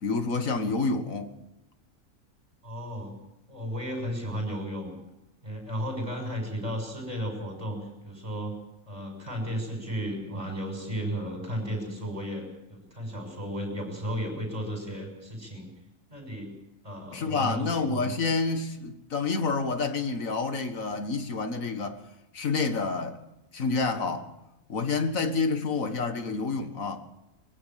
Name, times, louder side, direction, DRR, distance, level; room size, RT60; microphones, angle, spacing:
voice 1, 0.0-1.3 17.1-22.0 22.3-23.2 23.5-24.3 24.7-27.0, left 4 dB, 80° left, 2.1 m, -28 dB
voice 2, 2.6-3.1 3.5-4.9 5.4-7.8 8.0-8.5 8.9-15.7 16.1-16.5 16.8-18.1, equal, 25° right, 6.6 m, -34 dB
22.0 x 16.0 x 7.6 m
omnidirectional pair, 1.4 m